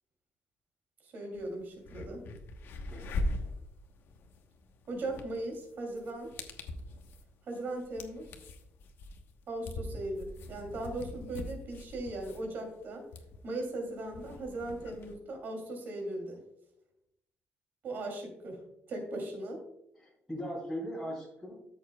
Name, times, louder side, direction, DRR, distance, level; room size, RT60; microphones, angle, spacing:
voice 1, 1.0-2.2 4.9-6.3 7.5-8.3 9.5-13.0 13.4-16.4 17.8-18.6 18.9-19.6, right 2 dB, 50° right, 3 dB, 2.9 m, -38 dB
sound 1, 1.3-1.4 1.8-15.1, left 2 dB, 60° left, 1.1 m, -41 dB
voice 2, 2.6-3.2 20.0-21.5, equal, ahead, -6 dB, 2.9 m, -39 dB
13.5 x 7.2 x 2.3 m, 0.83 s
cardioid pair, 175°, 4 cm